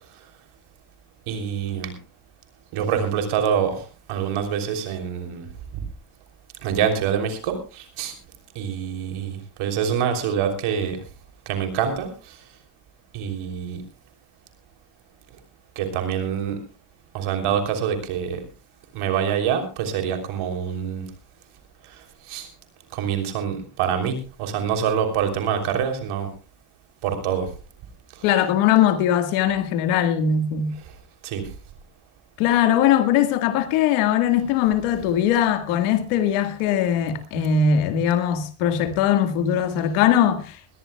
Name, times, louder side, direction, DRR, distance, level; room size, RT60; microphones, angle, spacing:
voice 1, 1.3-1.9 2.7-3.8 4.1-5.4 6.6-8.1 8.5-11.0 11.4-12.4 13.1-13.8 15.7-16.6 17.1-18.4 18.9-21.0 21.9-22.5 22.9-26.3 27.0-27.5 31.2-31.5, right 8 dB, 80° right, 3.4 m, -25 dB
voice 2, 28.2-30.7 32.4-40.6, left 9 dB, 90° left, 1.9 m, -20 dB
21.0 x 17.5 x 2.3 m
supercardioid pair, 55°, 49 cm